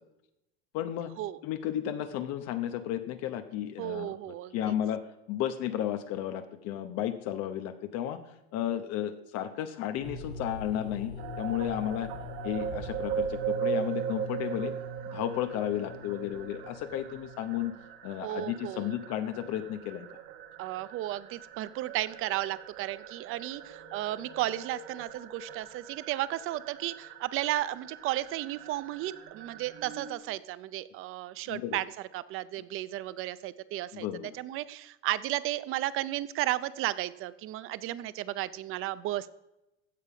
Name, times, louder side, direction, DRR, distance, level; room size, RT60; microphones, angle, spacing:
voice 1, 0.7-1.1 1.4-4.2 4.5-8.2 8.5-12.1 12.4-14.7 15.1-17.8 18.0-20.1 31.5-31.8 33.9-34.4, left 11 dB, 55° left, 8 dB, 0.9 m, -33 dB
voice 2, 3.8-4.7 18.2-18.9 20.6-39.3, right 15 dB, 40° right, 16 dB, 0.6 m, -34 dB
sound 1, 10.0-17.7, left 1 dB, 80° left, 4.5 m, -43 dB
sound 2, 11.2-30.1, right 8 dB, 65° right, 1.5 m, -40 dB
15.5 x 5.5 x 5.0 m, 0.94 s
supercardioid pair, 120°, 32 cm